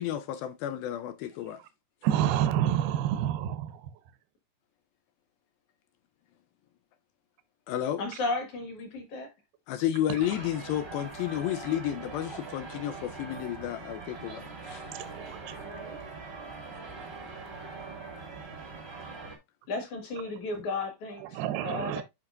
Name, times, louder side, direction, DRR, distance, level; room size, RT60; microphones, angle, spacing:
voice 1, 0.0-1.6 7.7-8.0 9.7-14.4 14.7-14.8, left 11 dB, 80° left, 2.2 m, -31 dB
voice 2, 2.0-3.8 15.1-16.0 21.3-22.0, right 11 dB, 80° right, 2.6 m, -29 dB
voice 3, 8.0-9.3 19.7-22.0, left 3 dB, 55° left, 2.7 m, -34 dB
sound 1, 10.2-19.4, right 4 dB, 45° right, 0.7 m, -42 dB
10.5 x 4.8 x 2.5 m
omnidirectional pair, 4.7 m